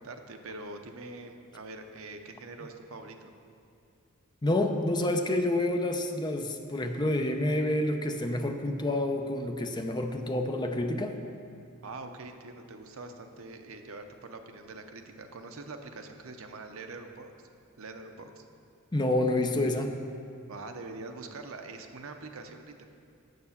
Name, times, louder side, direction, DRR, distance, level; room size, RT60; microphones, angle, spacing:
voice 1, 0.0-3.3 11.8-17.3 17.8-18.4 20.5-22.8, right 3 dB, 70° right, 6 dB, 0.7 m, -44 dB
voice 2, 4.4-11.2 18.9-19.9, left 1 dB, 20° left, 5 dB, 0.6 m, -28 dB
6.7 x 6.7 x 7.1 m, 2.4 s
head